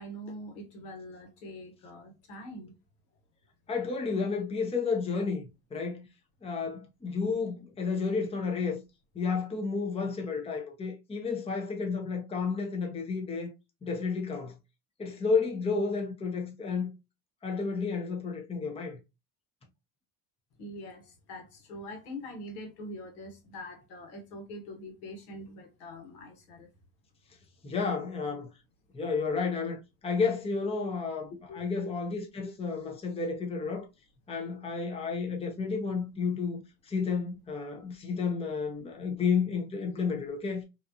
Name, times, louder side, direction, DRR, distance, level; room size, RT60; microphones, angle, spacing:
voice 1, 0.0-2.7 20.6-26.7 31.5-31.9, left 1 dB, 80° left, 1.3 m, -44 dB
voice 2, 3.7-6.1 6.4-8.8 9.1-13.5 13.8-14.5 15.0-16.9 17.4-19.0 27.6-28.5 28.9-33.9 34.3-40.6, left 5 dB, 15° left, 0.7 m, -31 dB
2.7 x 2.3 x 2.6 m
supercardioid pair, 85°, 46 cm